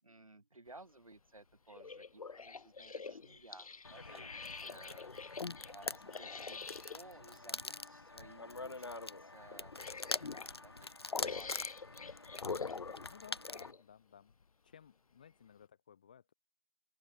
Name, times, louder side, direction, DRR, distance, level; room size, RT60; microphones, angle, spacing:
voice 1, 0.0-5.1 5.7-11.7, right 2 dB, 60° right, 5.0 m, -58 dB
sound 1, 1.7-7.0 8.1-8.3 8.6-8.7 9.5-10.5 11.1-13.8 14.4-14.5, left 4 dB, 60° left, 0.4 m, -45 dB
sound 2, 3.8-13.7, left 3 dB, 40° left, 0.9 m, -45 dB
voice 2, 4.7-5.0 12.5-14.4 14.6-16.3, left 8 dB, 15° left, 2.3 m, -59 dB
open air
figure-of-eight pair, 170°, 20 cm